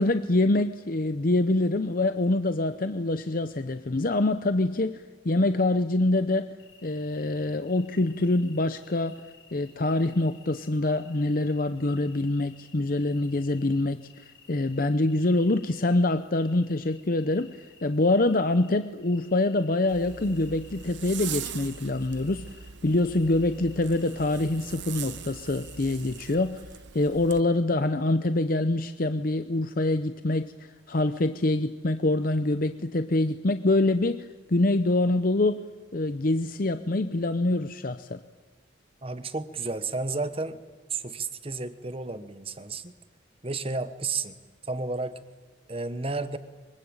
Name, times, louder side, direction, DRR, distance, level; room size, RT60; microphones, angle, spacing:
voice 1, 0.0-6.5 6.8-9.2 9.5-22.5 22.8-26.7 26.9-30.5 30.9-35.6 35.9-38.2, left 2 dB, 45° left, 10 dB, 0.7 m, -25 dB
sound 1, 6.6-26.5, left 6 dB, 65° left, 6.4 m, -56 dB
Zipper (clothing), 19.9-27.4, right 8 dB, 65° right, 0.9 m, -41 dB
voice 2, 39.0-40.6 40.9-42.9 43.4-44.3 44.7-45.2 45.7-46.4, right 3 dB, 30° right, 11 dB, 1.2 m, -32 dB
23.5 x 23.0 x 8.9 m, 1.3 s
head